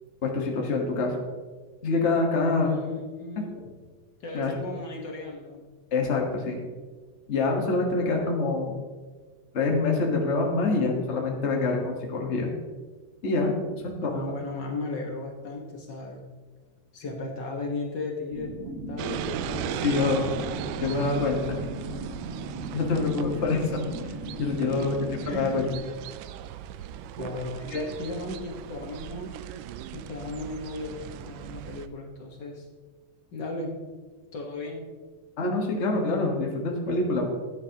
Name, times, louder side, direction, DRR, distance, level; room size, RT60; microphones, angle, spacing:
voice 1, 0.2-1.1 1.8-2.7 4.3-4.5 5.9-6.6 7.3-8.8 9.5-12.5 13.2-13.5 14.0-14.1 19.8-20.3 20.8-21.6 22.7-23.8 24.4-25.6 27.7-27.9 35.4-37.3, left 3 dB, 85° left, 0 dB, 0.6 m, -25 dB
voice 2, 2.6-3.7 4.2-5.6 14.0-16.2 16.9-20.1 24.7-24.9 25.3-25.7 27.2-29.3 29.9-32.6 33.3-33.7 34.3-34.9, left 2 dB, 50° left, 0 dB, 1.3 m, -36 dB
sound 1, 18.3-25.8, right 1 dB, 50° right, 2.3 m, -38 dB
sound 2, 19.0-31.9, right 11 dB, 90° right, 2.2 m, -38 dB
15.0 x 9.7 x 2.9 m, 1.4 s
omnidirectional pair, 3.7 m